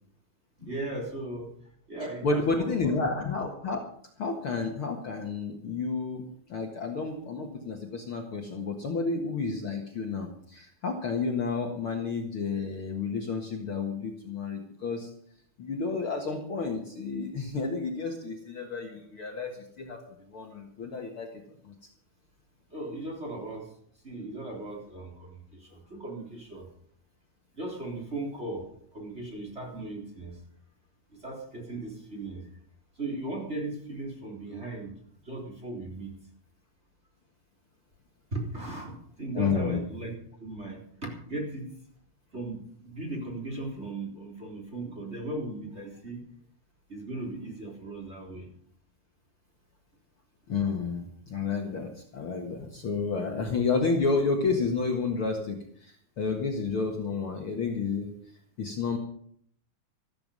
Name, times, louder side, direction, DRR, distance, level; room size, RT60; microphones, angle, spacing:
voice 1, 0.6-1.5 1.9-2.9 22.7-23.8 24.0-26.7 27.6-30.4 31.1-32.5 33.0-34.9 35.2-36.1 38.3-40.1 40.4-41.7 42.3-46.2 46.9-48.5, right 2 dB, 20° right, 0 dB, 3.8 m, -37 dB
voice 2, 2.2-3.8 4.2-6.2 6.5-15.1 15.6-21.3 21.6-21.7 39.4-39.8 50.5-58.1 58.6-59.0, left 4 dB, 50° left, 1 dB, 2.2 m, -31 dB
14.0 x 14.0 x 5.3 m, 0.63 s
omnidirectional pair, 3.6 m